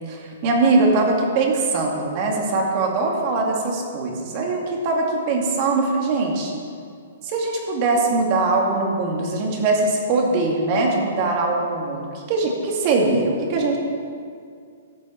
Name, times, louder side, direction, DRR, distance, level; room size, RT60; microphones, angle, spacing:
voice 1, 0.1-6.5 7.2-13.8, right 3 dB, 40° right, 0 dB, 2.4 m, -21 dB
12.5 x 7.4 x 5.8 m, 2.2 s
hypercardioid pair, 135°, 0 cm